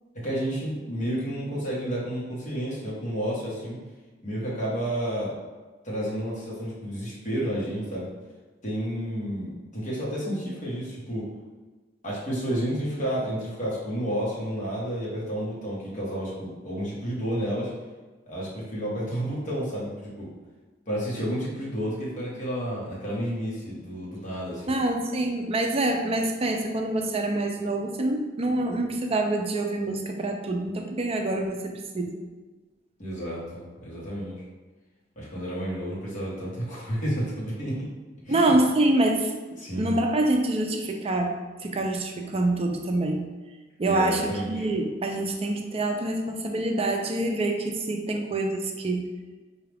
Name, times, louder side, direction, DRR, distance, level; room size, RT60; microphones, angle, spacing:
voice 1, 0.1-3.8 4.2-5.3 5.8-8.1 8.6-11.3 12.0-17.7 18.3-20.3 20.9-24.8 33.0-34.4 35.2-37.9 38.3-38.5 39.6-40.0 43.9-44.7, equal, 40° left, -6 dB, 1.3 m, -31 dB
voice 2, 24.7-32.2 38.3-39.3 39.8-41.3 41.6-43.2 43.8-49.1, right 2 dB, 30° right, 2 dB, 0.4 m, -26 dB
4.7 x 2.4 x 3.4 m, 1.3 s
head